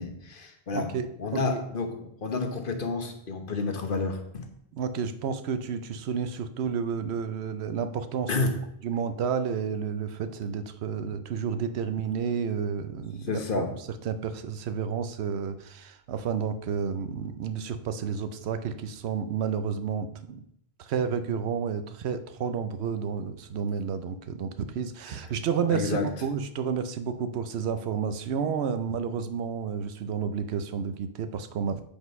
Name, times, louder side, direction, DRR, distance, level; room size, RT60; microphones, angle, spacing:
voice 1, 0.0-0.9 1.2-4.5 8.3-8.6 13.2-13.7 25.1-25.2 25.7-26.1, left 3 dB, 55° left, 5 dB, 1.3 m, -30 dB
voice 2, 0.7-1.6 4.7-8.3 8.8-13.6 14.1-20.4 20.8-31.8, right 6 dB, 90° right, 10 dB, 0.9 m, -31 dB
8.1 x 5.1 x 5.2 m, 0.72 s
omnidirectional pair, 1.1 m